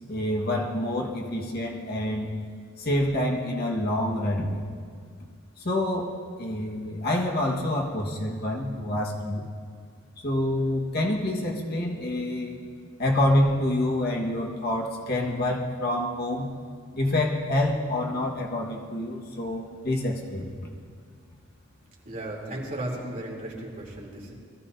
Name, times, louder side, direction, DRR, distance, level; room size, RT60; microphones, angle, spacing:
voice 1, 0.1-2.3 2.8-4.7 5.6-6.1 6.4-9.4 10.2-12.6 13.0-16.5 16.9-20.7, left 1 dB, 50° left, -1 dB, 1.6 m, -27 dB
voice 2, 22.0-24.3, right 1 dB, 40° right, -4 dB, 3.3 m, -35 dB
22.0 x 15.0 x 2.8 m, 2.1 s
head